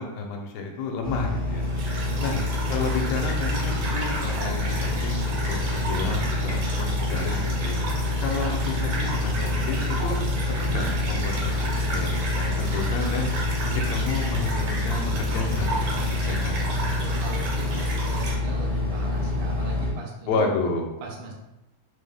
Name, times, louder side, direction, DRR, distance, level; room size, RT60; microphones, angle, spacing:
voice 1, 0.0-2.4 2.7-7.8 8.2-10.2 10.5-13.3 13.7-16.8 20.3-20.9, left 3 dB, 75° left, 2 dB, 1.7 m, -31 dB
Engine, 1.0-19.9, left 2 dB, 45° left, 0.4 m, -27 dB
sound 1, 1.6-18.3, right 2 dB, 70° right, 2.0 m, -34 dB
voice 2, 2.0-2.4 16.7-20.5 21.0-21.3, right 3 dB, 85° right, -1 dB, 1.2 m, -39 dB
4.8 x 2.1 x 3.3 m, 0.90 s
omnidirectional pair, 3.4 m